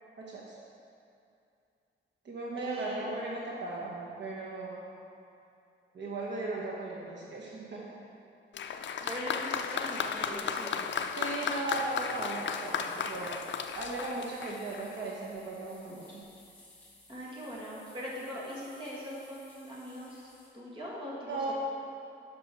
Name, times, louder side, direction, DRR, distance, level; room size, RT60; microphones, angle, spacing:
voice 1, 0.2-0.6 2.2-4.8 5.9-7.9 11.1-13.4 13.7-16.3 21.3-21.5, right 2 dB, 60° right, -4 dB, 1.1 m, -37 dB
voice 2, 2.6-3.0 9.0-10.9 17.1-20.3 20.5-21.5, equal, 25° right, -6 dB, 1.9 m, -41 dB
Applause, 8.5-15.0 15.9-16.0, left 6 dB, 65° left, 0.5 m, -35 dB
sound 1, 10.5-20.5, left 2 dB, 10° left, 1.9 m, -57 dB
11.0 x 5.4 x 4.5 m, 2.6 s
wide cardioid pair, 160°, 20 cm